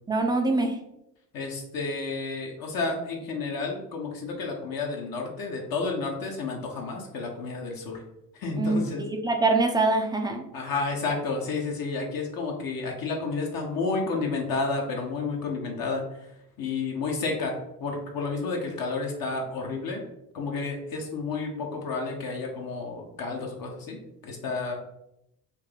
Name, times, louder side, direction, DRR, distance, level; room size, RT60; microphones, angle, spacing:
voice 1, 0.1-0.8 8.6-10.5, right 2 dB, 10° right, 3 dB, 0.4 m, -24 dB
voice 2, 1.3-8.0 8.3-9.1 10.5-16.0 16.6-17.5 17.8-20.0 20.3-24.7, left 3 dB, 45° left, 0 dB, 0.9 m, -31 dB
3.2 x 2.7 x 3.7 m, 0.82 s
figure-of-eight pair, 45°, 48 cm